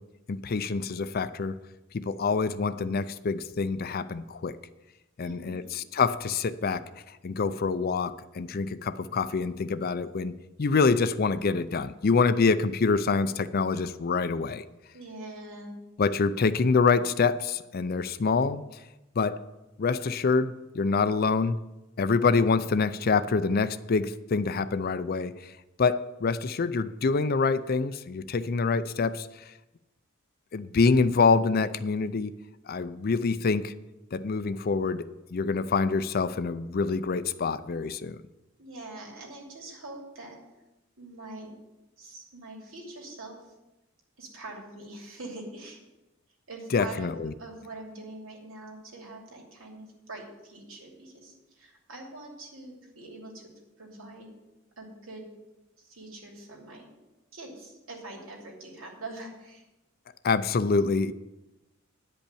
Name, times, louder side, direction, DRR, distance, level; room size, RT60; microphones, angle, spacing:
voice 1, 0.3-1.6 1.9-4.6 5.2-6.9 7.2-14.6 16.0-18.6 19.2-19.4 19.8-21.6 22.0-25.5 25.8-29.3 30.5-32.3 32.7-33.7 34.1-38.2 46.7-47.3 60.2-61.1, left 4 dB, 50° left, 13 dB, 0.5 m, -26 dB
voice 2, 5.2-5.8 14.9-15.7 38.6-40.4 41.0-41.5 42.0-43.5 44.2-45.8 46.5-47.1 47.4-53.5 53.8-54.3 54.8-55.3 55.8-56.9 57.3-59.6, right 2 dB, 90° right, 0 dB, 2.8 m, -43 dB
10.5 x 5.4 x 8.5 m, 1.0 s
head